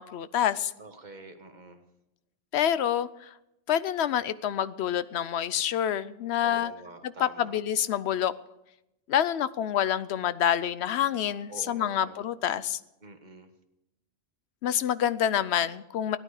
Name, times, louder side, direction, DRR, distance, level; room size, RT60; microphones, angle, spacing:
voice 1, 0.0-0.7 2.5-3.3 3.7-6.7 7.0-8.3 9.1-12.8 14.6-16.2, left 10 dB, 90° left, 15 dB, 0.9 m, -27 dB
voice 2, 0.8-1.8 6.4-7.5 11.5-12.2 13.0-13.5, right 2 dB, 45° right, 6 dB, 1.5 m, -46 dB
16.5 x 11.5 x 4.9 m, 0.89 s
omnidirectional pair, 1.1 m